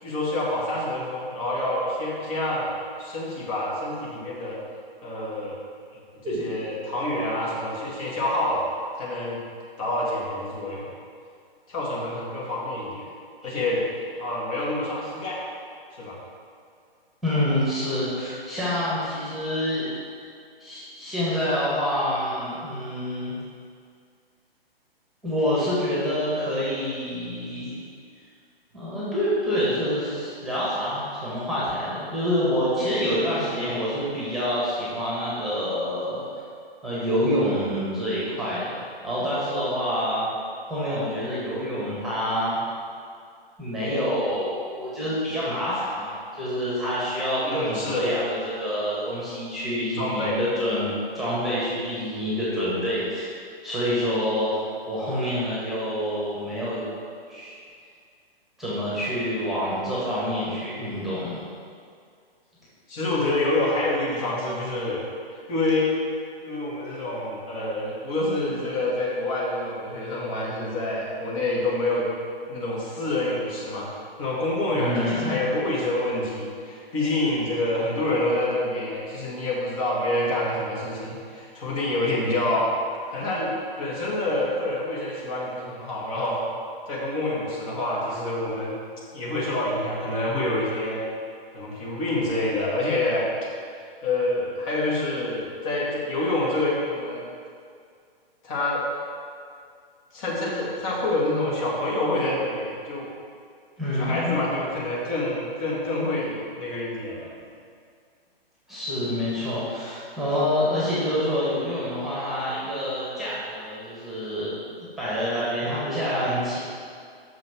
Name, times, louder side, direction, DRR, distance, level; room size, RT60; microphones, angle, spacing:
voice 1, 0.0-2.7 3.0-4.6 5.0-5.6 6.2-8.6 9.0-9.4 9.8-10.9 11.7-13.1 13.4-13.8 14.2-15.4 15.9-16.2 33.4-33.8 47.4-48.1 50.0-50.4 62.9-65.0 65.5-66.0 66.4-72.1 72.5-73.9 74.2-82.7 83.1-86.4 86.9-88.8 89.1-91.0 91.5-93.3 94.0-97.2 98.4-98.8 100.1-103.1 104.0-107.3, left 1 dB, 35° left, -5 dB, 1.9 m, -27 dB
voice 2, 17.2-19.9 20.6-23.3 25.2-27.8 28.7-36.2 36.8-38.8 39.0-40.3 40.7-42.6 43.6-54.5 54.9-56.8 57.3-57.5 58.6-61.4 74.7-75.3 103.8-104.4 108.7-116.6, equal, ahead, -9 dB, 1.6 m, -27 dB
6.3 x 5.9 x 6.0 m, 2.2 s
figure-of-eight pair, 130°, 30 cm